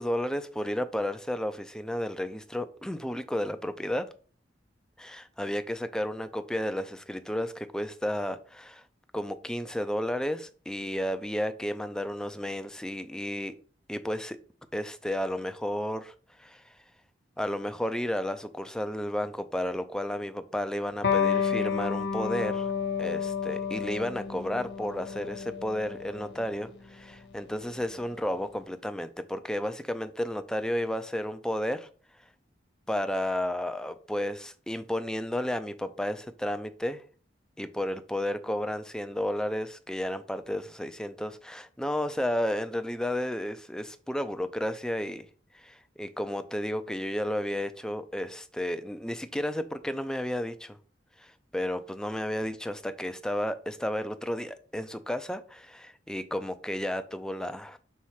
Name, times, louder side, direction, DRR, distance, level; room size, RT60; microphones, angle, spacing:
voice 1, 0.0-4.1 5.0-8.8 9.1-13.5 13.9-14.4 14.7-16.8 17.4-22.7 23.0-31.9 32.2-32.3 32.9-37.0 37.6-45.3 45.5-50.8 51.2-57.8, equal, 5° left, 0.4 m, -32 dB
Electric guitar, 21.0-28.2, left 6 dB, 65° left, 0.9 m, -31 dB
5.7 x 4.1 x 4.7 m
head